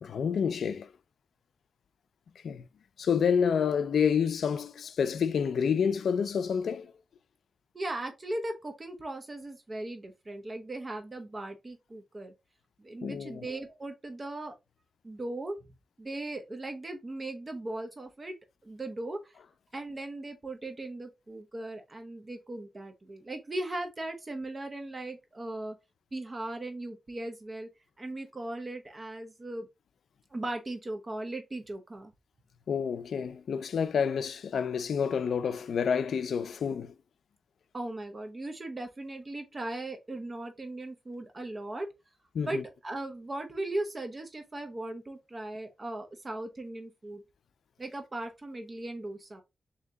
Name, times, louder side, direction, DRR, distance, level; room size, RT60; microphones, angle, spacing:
voice 1, 0.0-0.9 2.4-2.7 3.0-6.9 13.0-13.5 32.7-36.9 42.3-42.6, left 7 dB, 75° left, 0.4 m, -28 dB
voice 2, 7.7-12.3 12.8-14.5 15.0-15.6 16.0-18.3 18.6-19.4 19.7-25.7 26.1-27.7 28.0-29.7 30.3-32.1 37.7-41.9 42.4-47.2 47.8-49.4, right 2 dB, 30° right, 0.7 m, -38 dB
3.9 x 2.8 x 3.4 m
wide cardioid pair, 115°, 0 cm